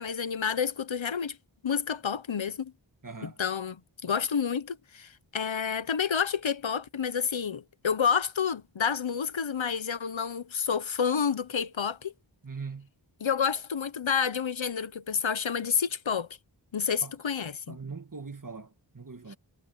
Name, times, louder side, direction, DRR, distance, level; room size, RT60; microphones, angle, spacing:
voice 1, 0.0-1.4 1.6-2.7 3.2-3.8 4.0-12.1 13.2-16.3 16.7-17.8, left 7 dB, 85° left, 0.9 m, -29 dB
voice 2, 3.0-3.4 12.4-12.9 17.0-17.1 17.7-19.4, right 4 dB, 45° right, 1.5 m, -41 dB
wide cardioid pair, 40°, 45 cm